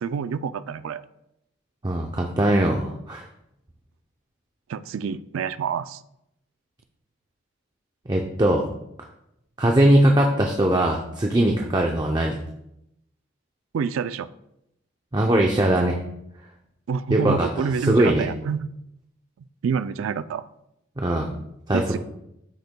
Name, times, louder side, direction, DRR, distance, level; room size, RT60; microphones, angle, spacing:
voice 1, 0.0-1.0 4.7-6.0 13.7-14.3 16.9-18.7 19.6-20.5 21.7-22.0, right 6 dB, 75° right, 13 dB, 0.3 m, -27 dB
voice 2, 1.8-3.2 8.1-8.7 9.6-12.4 15.1-16.0 17.1-18.2 21.0-21.3 21.7-22.0, right 1 dB, 20° right, 1 dB, 0.5 m, -21 dB
12.5 x 6.5 x 2.2 m, 0.82 s
head